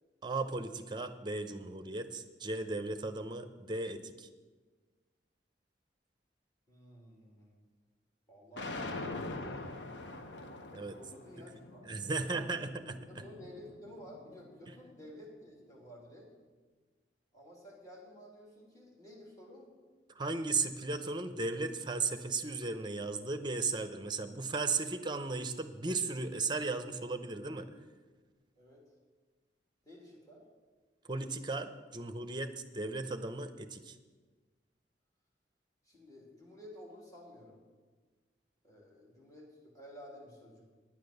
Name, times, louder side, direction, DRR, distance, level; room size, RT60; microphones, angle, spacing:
voice 1, 0.2-4.3 10.7-10.9 11.9-13.0 20.1-27.7 31.0-34.0, right 3 dB, 25° right, 9 dB, 0.7 m, -36 dB
voice 2, 6.7-7.6 8.3-8.8 10.8-11.8 12.1-12.5 13.1-16.3 17.3-19.7 28.6-28.8 29.8-30.4 35.8-37.6 38.6-40.6, equal, 20° left, -2 dB, 3.0 m, -52 dB
sound 1, 8.6-14.7, left 2 dB, 85° left, 0.9 m, -44 dB
9.8 x 9.0 x 6.7 m, 1.4 s
head